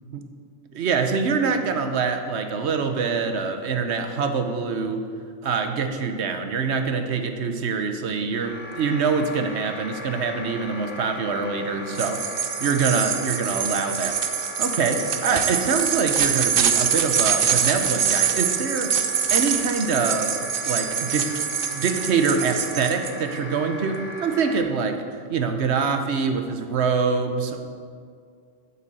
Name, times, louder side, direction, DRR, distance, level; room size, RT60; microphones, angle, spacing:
voice 1, 0.7-5.0 5.4-12.2 12.6-14.2 14.6-18.9 19.3-21.3 21.7-25.0 25.3-27.7, right 5 dB, 80° right, 6 dB, 1.2 m, -25 dB
sound 1, 8.3-24.6, left 1 dB, 45° left, 1.6 m, -38 dB
sound 2, 11.9-23.1, right 7 dB, 60° right, 0.8 m, -25 dB
8.4 x 6.9 x 7.7 m, 2.2 s
omnidirectional pair, 1.1 m